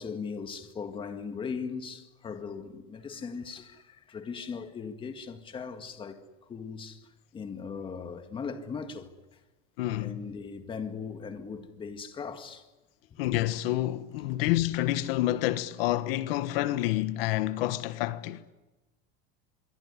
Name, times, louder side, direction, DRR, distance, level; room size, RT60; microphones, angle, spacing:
voice 1, 0.0-9.4 10.0-12.7 14.2-14.4, left 5 dB, 15° left, 1.9 m, -39 dB
voice 2, 9.8-10.2 13.2-18.4, left 15 dB, 75° left, 1.4 m, -28 dB
25.0 x 23.5 x 9.8 m
supercardioid pair, 170°, 30 cm